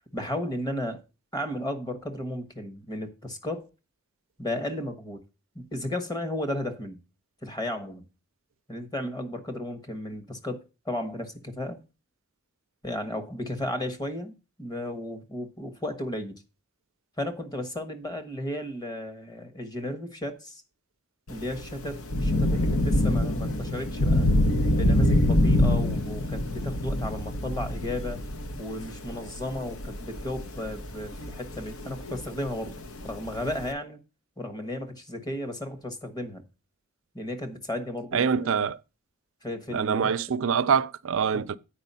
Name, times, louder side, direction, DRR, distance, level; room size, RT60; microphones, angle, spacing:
voice 1, 0.1-1.0 1.3-3.7 4.4-5.2 5.5-7.0 7.4-8.0 8.7-11.8 12.8-14.3 14.6-16.3 17.2-20.6 21.3-24.3 24.7-28.2 28.6-34.0 34.4-36.4 37.1-38.7 39.4-40.2 41.3-41.4, left 1 dB, 20° left, 1.2 m, -34 dB
Thunder / Rain, 21.3-33.7, left 1 dB, 75° left, 0.9 m, -26 dB
voice 2, 38.1-38.8 39.7-41.6, right 6 dB, 65° right, 0.4 m, -25 dB
8.9 x 4.8 x 5.5 m
head